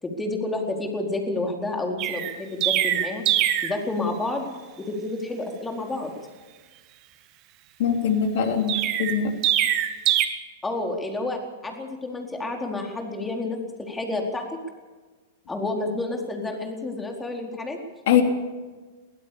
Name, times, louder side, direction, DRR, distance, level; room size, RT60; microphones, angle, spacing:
voice 1, 0.0-3.2 3.6-4.5 4.8-6.1 10.6-14.4 15.5-17.8, left 2 dB, 10° left, 2 dB, 4.3 m, -29 dB
Chirp tweet, 2.0-3.8 8.7-10.3, right 12 dB, 40° right, 1.8 m, -23 dB
voice 2, 7.8-9.4 18.1-18.2, left 8 dB, 60° left, 5 dB, 3.3 m, -22 dB
23.5 x 16.0 x 7.1 m, 1.3 s
hypercardioid pair, 105°, 0 cm